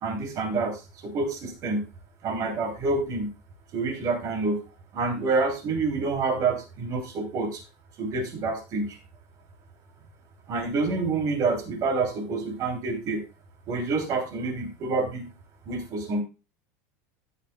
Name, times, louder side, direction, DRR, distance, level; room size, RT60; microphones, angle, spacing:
voice 1, 0.0-1.8 2.2-3.3 3.7-4.6 4.9-7.6 8.0-9.0 10.5-13.2 13.7-15.3 15.7-16.2, right 3 dB, 40° right, 4 dB, 3.2 m, -27 dB
15.5 x 6.5 x 2.3 m, 0.29 s
supercardioid pair, 145°, 8 cm